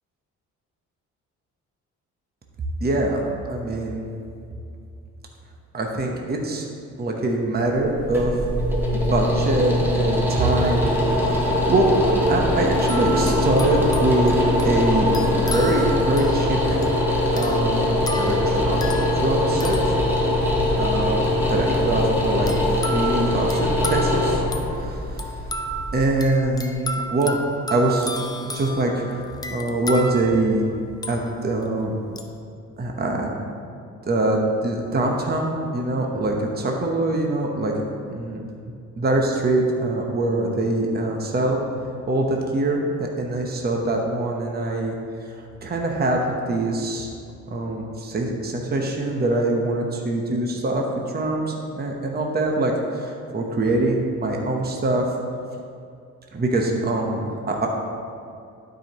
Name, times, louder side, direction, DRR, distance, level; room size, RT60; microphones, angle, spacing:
voice 1, 2.8-3.2 3.5-4.1 5.7-6.6 7.0-8.4 8.9-11.9 12.3-18.9 19.2-19.9 20.3-20.5 20.7-24.4 24.7-25.4 25.9-27.4 27.7-28.1 28.5-29.2 29.5-30.6 31.1-32.0 32.8-33.3 34.0-37.7 38.1-38.5 39.0-41.6 42.1-44.9 45.3-46.2 46.5-47.1 47.5-55.1 56.3-57.7, right 2 dB, 30° right, 1 dB, 1.0 m, -24 dB
sound 1, 7.7-26.7, left 1 dB, 5° right, 1.5 m, -22 dB
sound 2, 12.9-20.8 22.5-31.7 32.2-32.4, equal, 15° left, 0.6 m, -34 dB
12.0 x 5.1 x 3.0 m, 2.5 s
cardioid pair, 90°, 30 cm